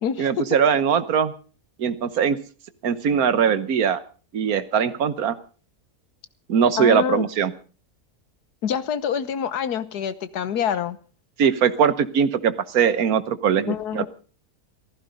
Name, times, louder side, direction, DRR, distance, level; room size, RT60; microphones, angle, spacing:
voice 1, 0.2-1.3 1.8-2.4 2.8-4.0 4.3-5.3 6.5-7.5 11.4-14.1, right 7 dB, 70° right, 1.5 m, -21 dB
voice 2, 6.8-7.3 8.6-11.0 13.7-14.1, left 8 dB, 85° left, 1.6 m, -26 dB
15.5 x 14.5 x 5.2 m
omnidirectional pair, 1.6 m